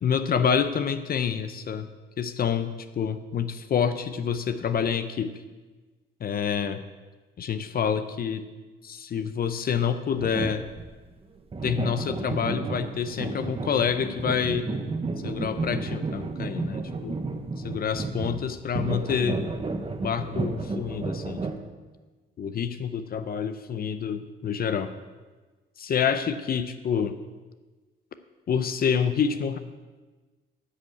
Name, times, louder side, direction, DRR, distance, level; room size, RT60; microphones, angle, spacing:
voice 1, 0.0-1.9 2.2-5.3 6.2-6.8 7.4-8.4 8.8-10.7 11.6-14.7 15.2-17.2 17.6-19.4 20.0-21.4 22.4-24.9 25.8-27.1 28.5-29.6, left 7 dB, 50° left, 10 dB, 0.6 m, -27 dB
sound 1, 10.2-10.9 11.5-21.6, right 3 dB, 30° right, 0.9 m, -32 dB
10.0 x 5.2 x 7.9 m, 1.3 s
cardioid pair, 90°, 20 cm